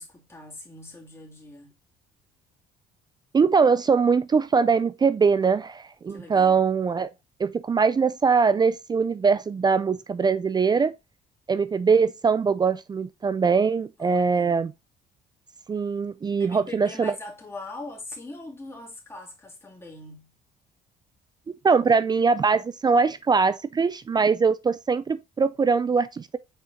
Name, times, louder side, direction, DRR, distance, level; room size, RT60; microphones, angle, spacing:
voice 1, 0.0-1.8 6.1-6.7 14.0-14.7 16.4-20.4, left 2 dB, 15° left, 2.6 m, -42 dB
voice 2, 3.3-7.1 7.4-10.9 11.5-14.7 15.7-17.1 21.5-26.4, right 5 dB, 25° right, 0.4 m, -22 dB
6.5 x 4.3 x 3.6 m
cardioid pair, 110°, 17 cm